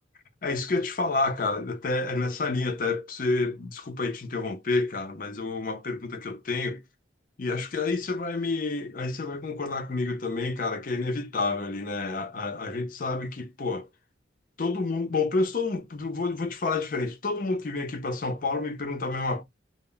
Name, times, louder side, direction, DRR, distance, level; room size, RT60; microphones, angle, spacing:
voice 1, 0.4-6.8 7.4-13.9 14.6-19.4, left 3 dB, 45° left, 0.5 m, -29 dB
2.1 x 2.1 x 3.5 m
head